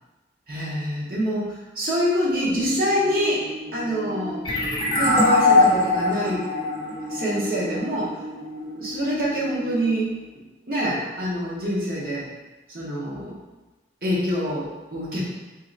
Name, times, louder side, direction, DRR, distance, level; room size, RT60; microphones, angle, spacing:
voice 1, 0.5-3.4 3.7-4.4 4.9-6.5 7.1-8.2 8.8-10.1 10.7-12.3 12.7-13.3 14.0-15.2, equal, 50° right, -6 dB, 0.9 m, -25 dB
sound 1, 2.5-10.0, equal, 5° right, 0.6 m, -36 dB
sound 2, 4.4-7.9, left 3 dB, 25° left, 0.7 m, -21 dB
3.0 x 2.8 x 3.8 m, 1.2 s
head